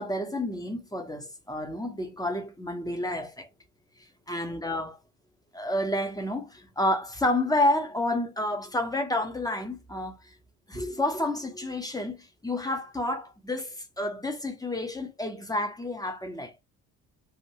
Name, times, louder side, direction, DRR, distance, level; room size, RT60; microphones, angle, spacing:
voice 1, 0.0-3.5 4.0-5.0 5.5-10.3 10.7-16.5, left 1 dB, 10° left, 0.9 m, -30 dB
2.8 x 2.6 x 2.9 m
figure-of-eight pair, 45°, 46 cm